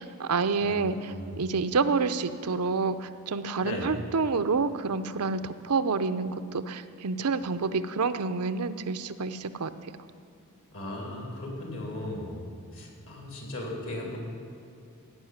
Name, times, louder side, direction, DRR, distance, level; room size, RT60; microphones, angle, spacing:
voice 1, 0.0-9.9, right 4 dB, 85° right, 11 dB, 0.6 m, -28 dB
voice 2, 0.6-1.3 3.6-4.0 10.7-12.5 12.7-14.2, left 1 dB, 65° left, -1 dB, 3.2 m, -37 dB
16.5 x 5.7 x 9.5 m, 2.6 s
head